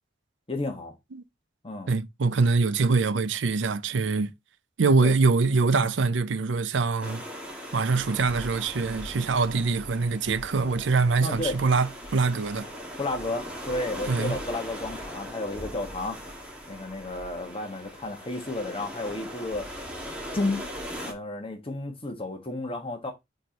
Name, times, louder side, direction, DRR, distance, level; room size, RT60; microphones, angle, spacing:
voice 1, 0.5-0.9 1.6-1.9 5.0-5.1 11.2-11.6 13.0-16.2 16.7-19.7 20.3-20.6 21.1-23.1, left 2 dB, 30° left, 1.4 m, -32 dB
voice 2, 1.9-4.3 4.8-7.2 7.7-12.7 14.1-14.4, right 4 dB, 75° right, 0.6 m, -24 dB
sound 1, 7.0-21.1, equal, 5° right, 1.6 m, -39 dB
4.6 x 4.4 x 5.1 m
head